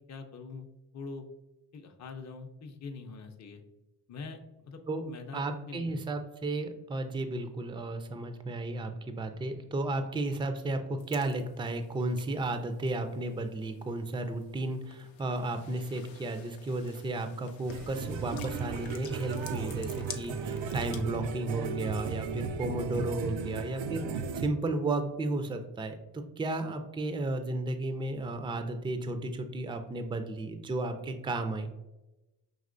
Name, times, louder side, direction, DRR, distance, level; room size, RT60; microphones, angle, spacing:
voice 1, 0.1-0.7 0.9-1.2 1.7-3.6 4.1-6.0, left 4 dB, 40° left, 4 dB, 0.6 m, -44 dB
voice 2, 5.3-31.7, right 2 dB, 10° right, 7 dB, 0.4 m, -33 dB
sound 1, 11.0-21.2, left 9 dB, 80° left, 0.6 m, -51 dB
sound 2, 17.7-24.5, right 5 dB, 80° right, 0.5 m, -35 dB
5.4 x 2.9 x 2.5 m, 0.99 s
cardioid pair, 60°, 45 cm